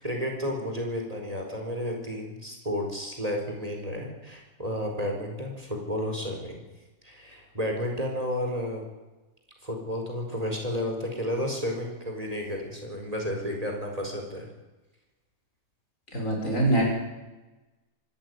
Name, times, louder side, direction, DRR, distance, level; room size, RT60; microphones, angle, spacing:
voice 1, 0.0-6.6 7.0-8.8 9.6-14.5, equal, 25° right, 1 dB, 4.8 m, -32 dB
voice 2, 16.1-16.8, right 2 dB, 60° left, 0 dB, 6.2 m, -24 dB
24.5 x 13.5 x 9.5 m, 1.1 s
omnidirectional pair, 1.5 m